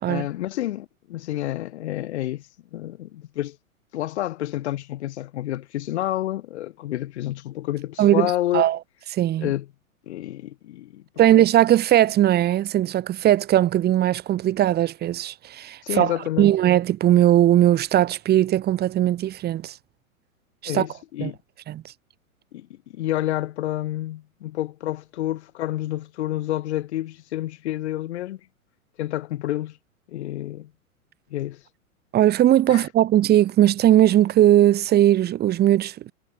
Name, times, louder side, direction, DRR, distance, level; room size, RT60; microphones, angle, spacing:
voice 1, 0.0-2.4 2.7-3.6 3.9-8.6 9.4-9.7 10.1-11.3 15.8-16.5 20.7-21.4 22.5-28.4 29.0-29.8 30.1-30.7 31.3-31.6 32.7-32.9, left 14 dB, 50° left, 7.5 m, -29 dB
voice 2, 8.0-8.8 9.1-9.5 11.2-19.7 20.6-20.9 21.2-21.3 21.7-21.8 32.1-36.1, right 12 dB, 20° right, 2.9 m, -19 dB
figure-of-eight pair, 105°, 43 cm